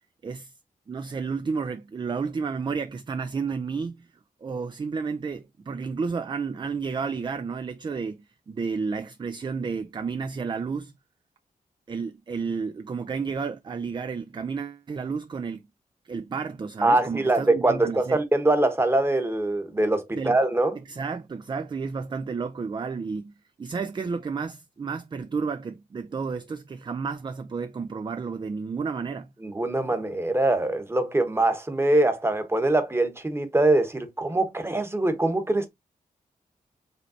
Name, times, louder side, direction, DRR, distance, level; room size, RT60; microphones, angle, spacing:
voice 1, 0.2-0.5 0.9-4.1 4.4-10.9 11.9-15.6 16.0-18.2 20.1-20.4 20.9-23.3 23.6-29.3, right 5 dB, 30° right, 0.4 m, -31 dB
voice 2, 16.8-20.8 29.4-35.7, right 2 dB, 15° right, 1.1 m, -23 dB
5.3 x 3.2 x 2.7 m
wide cardioid pair, 95°, 15 cm